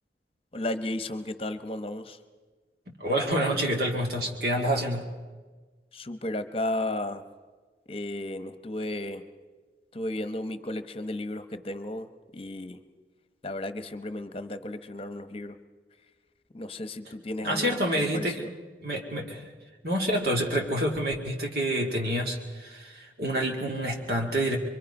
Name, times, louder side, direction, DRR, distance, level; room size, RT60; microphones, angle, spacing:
voice 1, 0.5-2.2 5.9-7.2 7.9-9.2 9.9-12.8 13.4-15.6 16.5-18.5, left 1 dB, 30° left, 10 dB, 1.0 m, -34 dB
voice 2, 2.9-5.1 17.4-18.4 18.8-19.5 19.8-24.6, right 1 dB, 60° right, 0 dB, 2.1 m, -28 dB
25.0 x 24.0 x 5.4 m, 1.4 s
head